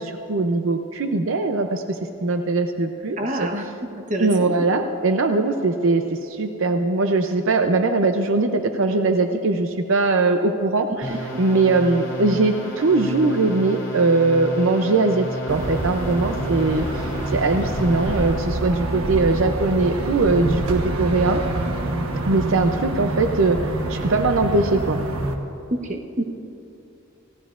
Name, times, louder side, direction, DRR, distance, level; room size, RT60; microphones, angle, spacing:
voice 1, 0.0-3.7 4.2-21.4 22.3-23.6 23.9-25.0, right 3 dB, 65° right, 6 dB, 0.6 m, -21 dB
voice 2, 3.2-3.6 4.1-4.3 4.6-4.7 11.1-11.2 25.7-26.2, right 1 dB, 35° right, 3 dB, 1.0 m, -26 dB
sound 1, 11.0-18.6, equal, 15° left, 3.0 m, -32 dB
sound 2, 15.5-25.4, right 1 dB, 85° right, 1.2 m, -27 dB
28.0 x 15.5 x 2.5 m, 2.8 s
head